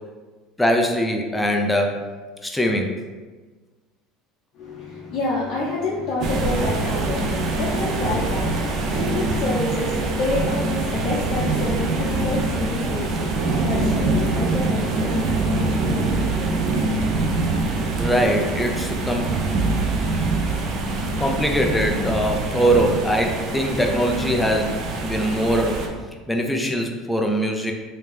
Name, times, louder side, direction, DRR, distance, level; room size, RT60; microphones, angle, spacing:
voice 1, 0.6-2.0 2.4-2.9 18.0-19.4 21.2-25.8 26.3-27.7, equal, 5° left, 2 dB, 0.5 m, -22 dB
voice 2, 4.5-18.0, left 2 dB, 50° left, -5 dB, 0.7 m, -29 dB
sound 1, 6.2-25.9, right 3 dB, 50° right, 0.5 m, -24 dB
3.4 x 2.8 x 3.3 m, 1.3 s
supercardioid pair, 120°, 0 cm